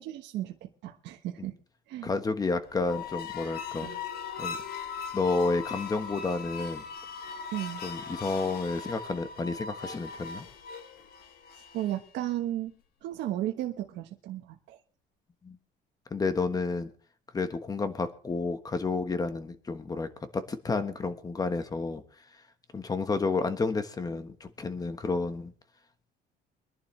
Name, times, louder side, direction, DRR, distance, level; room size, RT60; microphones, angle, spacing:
voice 1, 0.0-1.5 1.9-2.1 3.8-4.0 7.5-7.8 11.7-12.7 13.0-14.8, right 13 dB, 75° right, 3 dB, 1.2 m, -34 dB
voice 2, 2.0-3.9 4.4-4.6 5.1-6.8 7.8-10.5 15.4-15.6 16.1-16.9 17.3-22.0 22.7-25.5, left 3 dB, 20° left, 10 dB, 1.3 m, -30 dB
sound 1, 2.7-12.1, left 6 dB, 55° left, 1.3 m, -39 dB
23.5 x 11.0 x 3.2 m, 0.41 s
cardioid pair, 140°, 19 cm